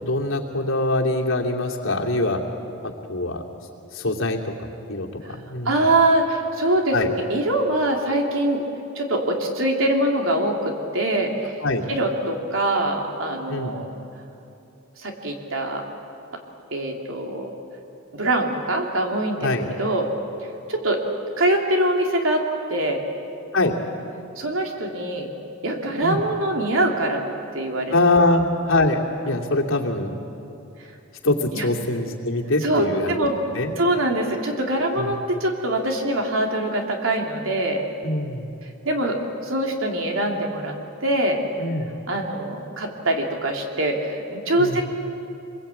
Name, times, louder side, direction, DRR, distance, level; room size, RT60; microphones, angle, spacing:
voice 1, 0.0-2.4 3.1-3.4 3.9-4.4 4.9-5.1 5.5-5.8 6.9-7.1 11.6-11.8 13.5-13.8 19.4-19.7 23.5-23.7 26.0-26.2 27.9-29.0 29.2-30.1 31.2-33.3 33.5-33.7 35.0-35.1 38.0-38.5 41.6-41.9 44.6-44.8, left 2 dB, 90° left, 0 dB, 2.8 m, -23 dB
voice 2, 5.6-8.6 8.9-11.6 11.9-13.9 15.0-15.8 16.7-17.5 18.1-19.5 19.8-20.1 20.7-21.0 21.4-23.0 24.4-25.3 25.6-27.2 27.5-27.9 31.5-31.7 32.6-33.4 33.8-37.9 38.8-39.2 39.4-40.7 41.0-41.4 42.1-44.8, right 1 dB, 85° right, 2 dB, 3.1 m, -23 dB
25.5 x 21.5 x 8.6 m, 2.7 s
head